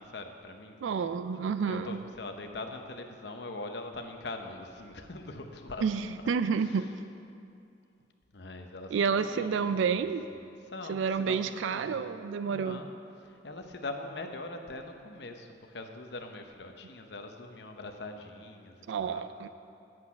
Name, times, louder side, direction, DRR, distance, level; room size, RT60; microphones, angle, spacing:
voice 1, 0.0-1.2 1.6-7.1 8.3-10.0 10.3-12.1 12.4-12.9 13.2-19.3, left 2 dB, 65° left, 5 dB, 0.8 m, -43 dB
voice 2, 0.8-2.1 5.8-6.9 8.9-10.2 10.9-12.8 18.9-19.5, right 6 dB, 85° right, 12 dB, 0.3 m, -29 dB
8.4 x 7.6 x 5.7 m, 2.5 s
head